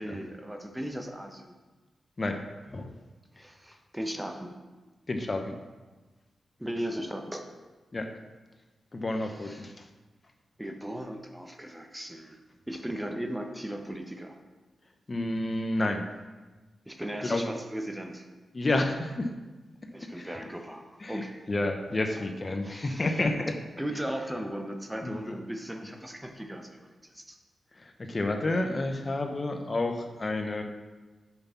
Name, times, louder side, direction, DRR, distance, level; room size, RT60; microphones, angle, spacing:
voice 1, 0.0-1.5 3.4-4.6 6.6-7.5 9.2-9.7 10.6-12.4 12.7-14.4 16.9-18.3 19.9-21.4 22.6-23.2 23.8-27.4, right 1 dB, 10° right, 4 dB, 1.0 m, -37 dB
voice 2, 5.1-5.5 7.9-8.1 8.9-9.7 15.1-16.0 17.2-17.4 18.5-19.3 20.2-20.3 21.0-21.2 21.5-23.6 25.0-25.1 28.0-30.6, left 2 dB, 40° left, 5 dB, 0.8 m, -29 dB
6.0 x 5.2 x 5.7 m, 1.2 s
supercardioid pair, 45°, 0 cm